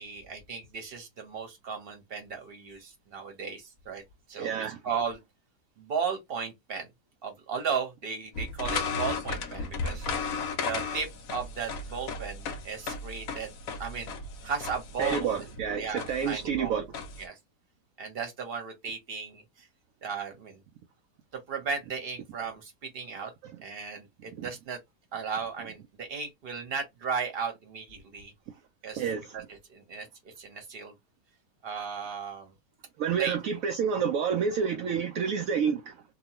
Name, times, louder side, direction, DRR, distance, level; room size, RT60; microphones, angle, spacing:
voice 1, 0.0-4.0 4.3-5.2 5.8-6.9 7.2-10.1 10.5-15.4 15.8-16.8 17.2-17.4 18.0-19.7 20.0-20.6 21.3-23.3 23.6-24.8 25.1-28.3 28.8-29.0 29.3-30.9 31.6-32.5 33.2-33.4, right 6 dB, 40° right, 1.0 m, -36 dB
voice 2, 4.4-4.8 15.0-16.9 23.4-23.5 24.3-24.4 29.0-29.3 33.0-36.0, right 7 dB, 70° right, 0.8 m, -29 dB
sound 1, 8.3-17.2, left 4 dB, 65° left, 0.9 m, -35 dB
2.9 x 2.3 x 2.9 m
omnidirectional pair, 1.8 m